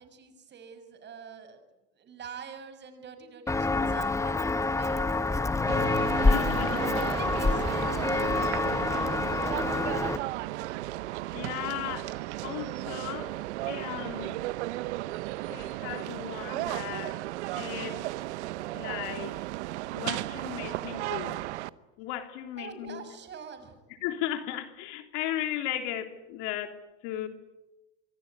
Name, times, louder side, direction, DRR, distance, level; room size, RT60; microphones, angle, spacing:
voice 1, 0.0-1.6 2.0-4.5 4.8-5.1 6.6-8.3 22.6-23.8, right 5 dB, 30° right, 6.1 m, -44 dB
Walk footsteps, 3.5-10.2, left 3 dB, 10° left, 1.1 m, -27 dB
sound 1, 5.7-21.7, right 17 dB, 85° right, 1.0 m, -35 dB
voice 2, 6.1-7.0 11.3-12.1 12.4-13.4 13.7-14.4 15.5-17.2 17.5-18.0 18.7-19.4 19.9-21.4 22.0-23.0 24.0-27.3, left 12 dB, 65° left, 3.4 m, -36 dB
26.0 x 22.5 x 9.7 m
supercardioid pair, 125°, 33 cm